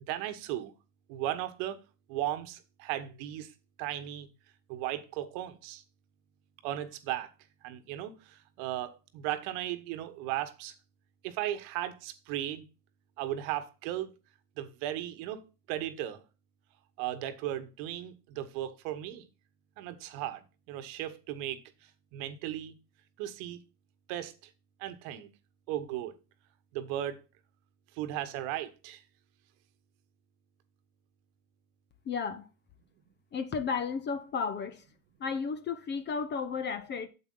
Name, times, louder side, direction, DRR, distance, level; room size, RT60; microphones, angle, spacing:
voice 1, 0.1-0.7 1.1-1.8 2.1-3.5 3.8-4.3 4.7-5.8 6.6-7.3 7.6-10.7 11.2-12.6 13.2-14.1 14.6-15.4 15.7-16.2 17.0-19.3 19.8-20.4 20.7-21.6 22.1-22.7 23.2-23.6 24.1-24.3 24.8-25.3 25.7-26.1 26.7-27.2 28.0-29.0, right 13 dB, 45° right, 1.4 m, -36 dB
voice 2, 32.1-32.5 33.3-34.8 35.2-37.1, left 5 dB, 25° left, 0.9 m, -33 dB
8.4 x 7.7 x 3.8 m
hypercardioid pair, 95°, 45 cm